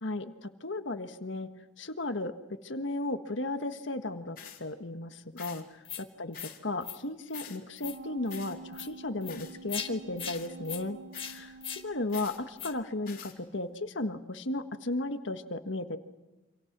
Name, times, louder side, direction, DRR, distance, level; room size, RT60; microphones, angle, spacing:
voice 1, 0.0-1.5 1.8-2.3 2.6-5.6 6.0-11.0 11.3-16.0, left 2 dB, 85° left, 8 dB, 1.6 m, -35 dB
sound 1, 4.4-4.6 5.4-5.6 6.3-6.6 7.3-7.6 8.3-8.6 9.3-9.6 10.2-10.5 11.1-11.4 12.1-12.4 13.1-13.4, left 8 dB, 45° left, 3.6 m, -48 dB
sound 2, 5.4-5.5 5.8-6.0 6.3-6.5 6.8-7.0 7.3-7.5 7.8-8.0 8.3-8.4 8.7-8.9 9.2-9.4 9.7-9.9 10.2-10.4 10.6-10.8 11.1-11.3 11.6-11.8 12.1-12.2 12.6-12.7, left 8 dB, 30° left, 1.7 m, -39 dB
sound 3, 7.8-12.4 12.8-12.9, right 3 dB, 70° right, 1.4 m, -48 dB
29.0 x 27.0 x 6.1 m, 1.1 s
head